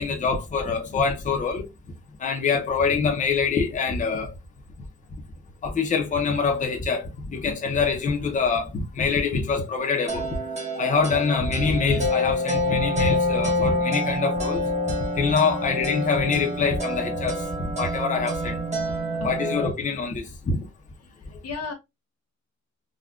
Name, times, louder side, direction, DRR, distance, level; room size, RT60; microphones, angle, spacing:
voice 1, 0.0-1.7 2.2-4.3 5.6-10.3 10.7-14.7 15.2-17.4 17.8-18.6 19.2-20.6, left 5 dB, 25° left, 0.5 m, -25 dB
sound 1, 10.1-19.7, left 1 dB, 25° right, 0.8 m, -27 dB
voice 2, 19.2-19.6 21.2-21.7, left 4 dB, 55° left, 0.9 m, -35 dB
3.6 x 2.2 x 2.3 m
wide cardioid pair, 170°, 30 cm